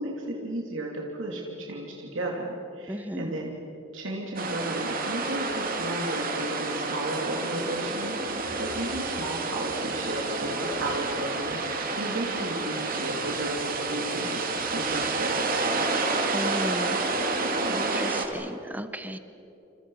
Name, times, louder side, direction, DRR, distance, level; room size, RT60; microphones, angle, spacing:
voice 1, 0.0-3.6 3.9-15.9, right 1 dB, 75° right, -1 dB, 2.9 m, -34 dB
voice 2, 2.9-3.3 16.3-17.0 17.7-19.2, right 1 dB, 10° right, 10 dB, 1.0 m, -35 dB
sound 1, 4.4-18.3, right 3 dB, 45° right, 2.4 m, -29 dB
28.0 x 28.0 x 5.7 m, 2.8 s
head